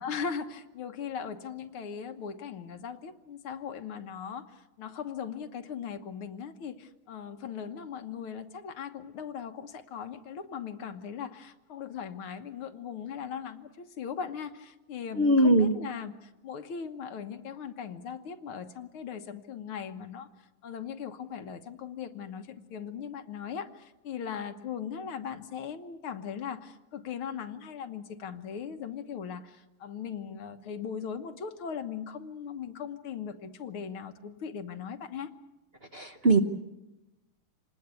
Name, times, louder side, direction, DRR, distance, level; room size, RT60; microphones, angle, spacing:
voice 1, 0.0-4.4 4.8-20.3 20.6-35.3, left 7 dB, 90° left, 7 dB, 2.1 m, -39 dB
voice 2, 15.1-15.8 35.9-36.4, right 2 dB, 40° right, 6 dB, 0.9 m, -21 dB
27.0 x 19.5 x 8.3 m, 0.98 s
omnidirectional pair, 2.3 m